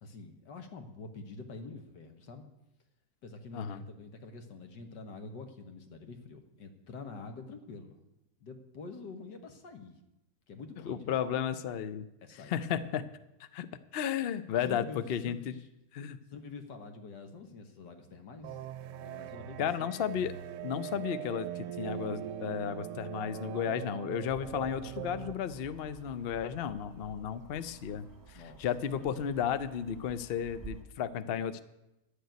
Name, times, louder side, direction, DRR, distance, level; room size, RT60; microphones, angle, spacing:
voice 1, 0.0-2.5 3.2-8.0 8.4-10.0 10.5-11.1 12.2-12.8 14.7-15.7 16.3-18.6 19.0-19.9 28.3-29.2, left 4 dB, 85° left, 6 dB, 1.9 m, -47 dB
voice 2, 10.9-12.1 12.3-13.0 13.4-13.7 13.9-15.5 15.9-16.2 19.6-20.3 20.6-31.6, left 9 dB, 60° left, 13 dB, 0.6 m, -34 dB
sound 1, 18.4-25.3, right 11 dB, 85° right, 1.2 m, -41 dB
sound 2, 24.3-30.8, right 6 dB, 20° right, 0.6 m, -52 dB
11.5 x 6.9 x 9.2 m, 0.91 s
omnidirectional pair, 1.8 m